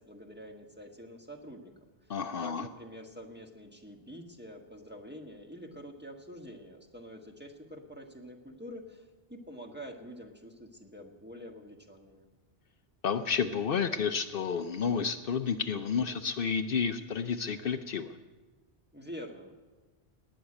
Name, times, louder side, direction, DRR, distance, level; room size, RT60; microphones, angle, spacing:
voice 1, 0.0-1.7 2.0-12.2 18.9-19.5, equal, 10° right, 1 dB, 1.5 m, -47 dB
voice 2, 2.1-2.7 13.0-18.1, left 6 dB, 65° left, 9 dB, 0.8 m, -31 dB
18.5 x 6.4 x 9.9 m, 1.3 s
omnidirectional pair, 1.0 m